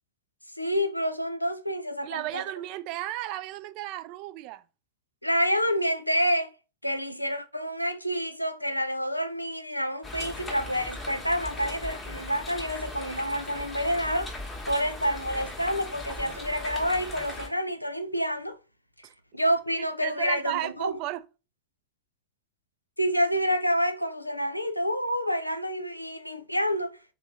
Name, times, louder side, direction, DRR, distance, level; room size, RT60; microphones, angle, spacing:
voice 1, 0.6-2.4 5.2-6.5 6.8-14.3 14.7-18.6 19.3-21.0 23.0-27.0, equal, 90° left, 0.4 m, -28 dB
voice 2, 2.0-4.6 19.0-19.1 19.8-21.2, right 15 dB, 45° right, 0.4 m, -34 dB
sound 1, 10.0-17.5, left 2 dB, 15° left, 1.1 m, -39 dB
3.1 x 3.0 x 3.5 m
figure-of-eight pair, 90°, 0 cm